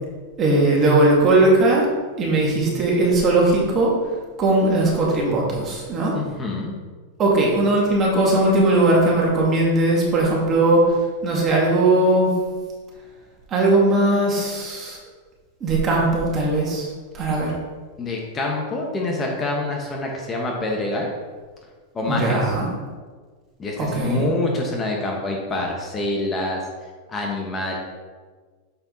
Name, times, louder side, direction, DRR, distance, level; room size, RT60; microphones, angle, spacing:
voice 1, 0.4-1.9 2.2-4.0 4.4-6.2 7.2-11.0 11.2-12.3 13.5-15.0 15.6-16.9 17.1-17.5 22.1-22.7 23.8-24.2, right 2 dB, 25° right, -3 dB, 2.2 m, -19 dB
voice 2, 6.1-6.7 18.0-21.1 21.9-22.4 23.6-26.6 27.1-27.8, left 2 dB, 20° left, 0 dB, 1.1 m, -26 dB
7.1 x 5.5 x 4.0 m, 1.5 s
supercardioid pair, 140°, 0 cm